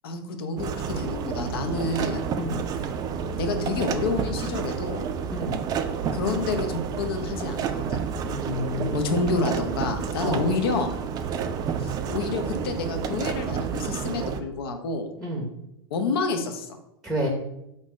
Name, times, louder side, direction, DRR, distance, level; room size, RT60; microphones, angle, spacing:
voice 1, 0.0-2.2 3.4-5.1 6.1-8.0 8.9-10.9 11.8-15.1 15.9-16.7, left 3 dB, 65° left, 7 dB, 0.6 m, -28 dB
sound 1, 0.6-14.4, right 7 dB, 30° right, 0.4 m, -30 dB
voice 2, 8.2-9.3 10.2-10.4 15.2-15.5 17.0-17.3, equal, 5° right, 0 dB, 0.7 m, -30 dB
4.0 x 2.6 x 3.6 m, 0.85 s
hypercardioid pair, 95°, 14 cm